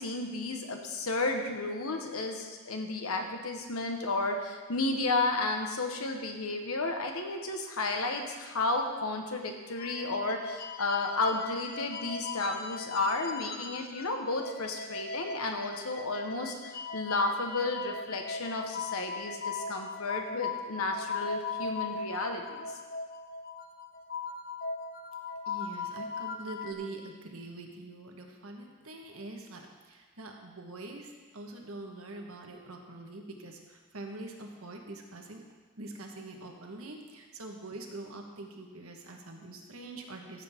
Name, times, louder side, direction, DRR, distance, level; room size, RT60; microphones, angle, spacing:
voice 1, 0.0-22.7, left 2 dB, 80° left, 4 dB, 1.2 m, -32 dB
sound 1, 9.8-14.1 14.4-26.7, left 4 dB, 40° left, 0.6 m, -39 dB
voice 2, 25.5-35.4 35.8-40.4, right 2 dB, 75° right, 2 dB, 1.3 m, -44 dB
14.5 x 7.6 x 3.6 m, 1.4 s
head